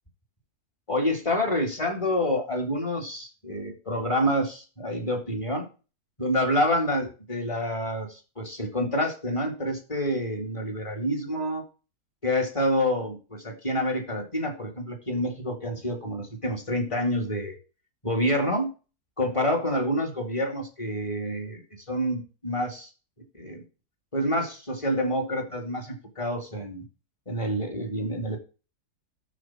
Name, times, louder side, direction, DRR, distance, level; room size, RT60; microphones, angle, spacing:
voice 1, 0.9-5.7 6.2-11.6 12.2-17.5 18.0-18.7 19.2-21.6 21.9-22.9 23.3-23.6 24.1-26.8 27.3-28.4, equal, 20° left, 1 dB, 2.6 m, -27 dB
13.0 x 4.4 x 6.0 m, 0.34 s
omnidirectional pair, 1.6 m